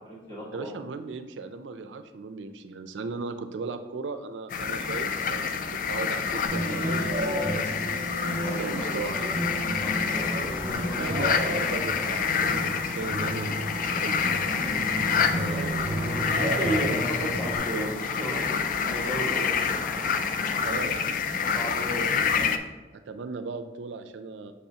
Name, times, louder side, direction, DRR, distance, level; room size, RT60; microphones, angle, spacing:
voice 1, 0.0-0.7 8.4-8.8 9.8-10.3 14.7-15.1 16.2-19.5 21.5-22.5, right 1 dB, 20° left, -8 dB, 2.1 m, -34 dB
voice 2, 0.5-8.0 8.4-9.3 11.0-14.2 20.6-21.2 22.9-24.5, right 4 dB, 80° right, 9 dB, 0.4 m, -37 dB
sound 1, 4.5-22.6, left 6 dB, 45° left, 0.3 m, -28 dB
sound 2, 6.4-17.6, right 1 dB, 35° right, 1.1 m, -32 dB
sound 3, 8.3-20.7, equal, ahead, 0.8 m, -43 dB
6.4 x 5.5 x 2.8 m, 1.1 s
head